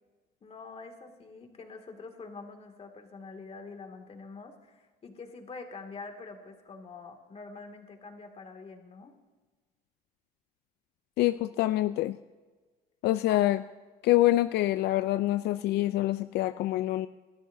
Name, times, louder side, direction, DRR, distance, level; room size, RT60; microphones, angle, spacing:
voice 1, 0.4-9.1 13.3-13.4, left 4 dB, 35° left, 5 dB, 2.2 m, -45 dB
voice 2, 11.2-12.2 13.0-13.6 14.0-17.1, left 15 dB, 80° left, 12 dB, 0.4 m, -26 dB
24.5 x 13.0 x 2.7 m, 1.3 s
cardioid pair, 110°, 17 cm